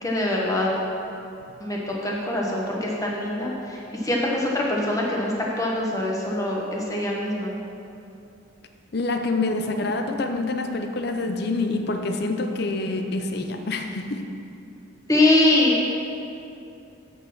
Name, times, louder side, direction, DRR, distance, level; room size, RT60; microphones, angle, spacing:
voice 1, 0.0-0.8 1.6-7.6 15.1-15.8, left 1 dB, 15° left, -3 dB, 1.1 m, -23 dB
voice 2, 8.9-14.2, left 2 dB, 50° left, 5 dB, 0.6 m, -26 dB
7.8 x 6.4 x 5.9 m, 2.7 s
head